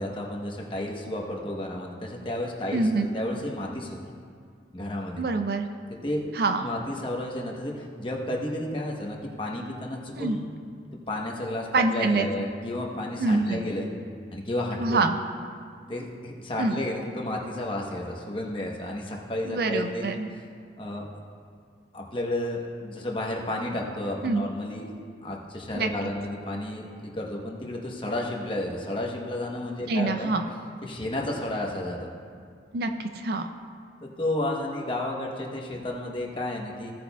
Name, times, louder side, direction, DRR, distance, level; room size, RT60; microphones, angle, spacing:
voice 1, 0.0-4.0 4.7-5.2 6.0-6.2 6.6-10.4 11.1-13.9 14.3-15.0 15.9-20.0 20.8-21.2 21.9-24.9 25.2-30.3 30.8-32.1 34.0-36.9, left 1 dB, 25° left, -1 dB, 1.0 m, -32 dB
voice 2, 2.7-3.1 5.2-5.7 6.3-6.7 10.2-10.4 11.7-12.3 13.2-13.6 14.8-15.2 16.6-16.8 19.5-20.3 24.2-24.4 25.7-25.9 29.9-30.4 32.7-33.5, right 3 dB, 55° right, 6 dB, 0.4 m, -25 dB
16.0 x 8.4 x 2.3 m, 2.2 s
head